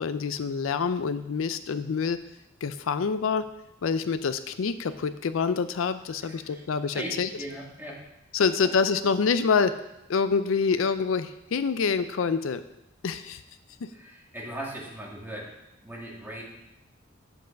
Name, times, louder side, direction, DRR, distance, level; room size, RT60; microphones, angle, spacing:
voice 1, 0.0-2.2 2.6-3.4 3.8-7.3 8.3-9.7 10.1-12.6 13.0-13.4, left 5 dB, 70° left, 12 dB, 0.4 m, -26 dB
voice 2, 6.2-6.6 6.9-8.0 13.9-15.5 15.8-16.4, right 1 dB, 10° right, -3 dB, 1.8 m, -38 dB
8.0 x 7.6 x 5.1 m, 0.90 s
head